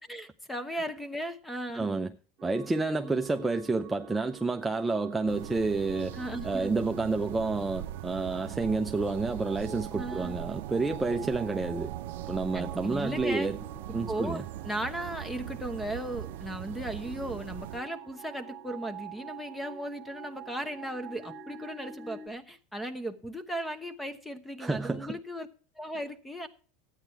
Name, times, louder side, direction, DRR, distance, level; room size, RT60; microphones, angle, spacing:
voice 1, 0.0-1.9 3.0-3.2 6.1-6.8 9.9-10.4 12.5-13.5 14.1-25.5 25.8-26.5, right 1 dB, 5° left, 1.0 m, -37 dB
voice 2, 1.7-2.1 2.4-11.9 12.3-13.6 13.9-14.4 24.6-25.2, right 3 dB, 10° right, 0.5 m, -30 dB
sound 1, 2.4-22.3, right 7 dB, 45° right, 1.6 m, -47 dB
sound 2, 5.3-17.8, right 14 dB, 75° right, 0.4 m, -40 dB
13.0 x 9.1 x 4.5 m
supercardioid pair, 130°, 0 cm